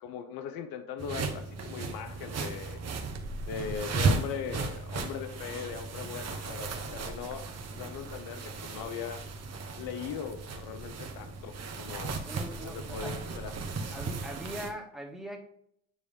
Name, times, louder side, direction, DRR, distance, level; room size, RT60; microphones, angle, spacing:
voice 1, 0.0-2.8 3.5-7.5 7.7-9.2 9.8-12.2 12.6-13.5, left 7 dB, 70° left, 9 dB, 0.8 m, -39 dB
sound 1, 1.0-14.7, right 4 dB, 40° right, 1.3 m, -35 dB
voice 2, 12.2-13.2 13.9-15.4, equal, ahead, 0 dB, 1.9 m, -41 dB
9.3 x 3.2 x 3.6 m, 0.70 s
supercardioid pair, 70°, 38 cm